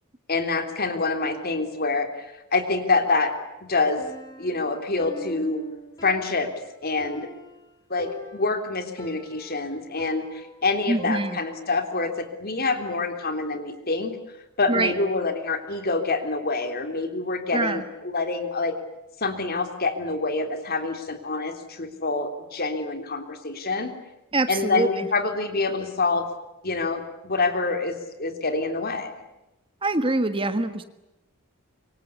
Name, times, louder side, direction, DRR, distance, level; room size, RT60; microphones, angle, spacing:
voice 1, 0.3-3.4 3.7-4.0 4.4-5.6 6.0-6.5 6.8-7.3 7.9-14.2 14.6-18.8 19.2-24.0 24.5-26.3 26.6-29.2, left 3 dB, 45° left, 7 dB, 3.4 m, -26 dB
Piano, 4.0-11.8, right 1 dB, 15° left, 5.3 m, -43 dB
voice 2, 10.9-11.4 14.7-14.9 17.5-17.8 24.3-25.1 29.8-30.8, right 2 dB, 25° right, 10 dB, 1.5 m, -24 dB
26.5 x 24.5 x 8.5 m, 0.96 s
head